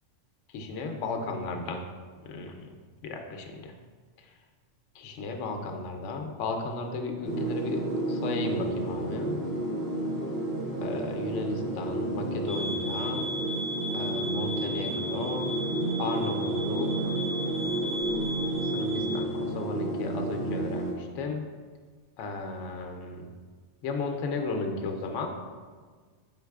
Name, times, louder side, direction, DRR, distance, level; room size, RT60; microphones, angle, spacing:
voice 1, 0.5-1.8 2.3-2.6 3.0-3.7 5.0-9.4 10.8-13.3 13.9-15.5 16.0-17.2 18.7-21.4 22.2-23.3 23.8-25.3, left 3 dB, 75° left, 3 dB, 0.9 m, -34 dB
sound 1, 7.2-20.9, right 1 dB, 20° right, 1.3 m, -31 dB
sound 2, 12.5-19.2, equal, 60° right, 1.5 m, -36 dB
5.1 x 3.8 x 2.3 m, 1.5 s
omnidirectional pair, 1.3 m